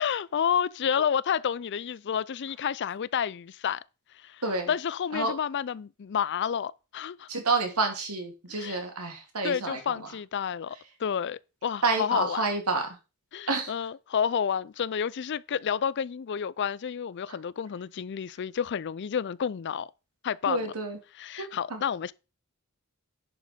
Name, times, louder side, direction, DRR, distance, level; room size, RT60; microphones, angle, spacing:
voice 1, 0.0-3.8 4.2-4.4 4.7-7.3 8.6-8.8 9.4-12.4 13.3-19.9 20.2-20.6 21.2-22.1, left 7 dB, 50° left, 0.4 m, -30 dB
voice 2, 7.3-10.1 11.8-13.0 13.5-13.7 17.3-17.4 20.5-21.0 21.4-21.8, right 3 dB, 90° right, 2.7 m, -29 dB
10.5 x 5.1 x 5.1 m
head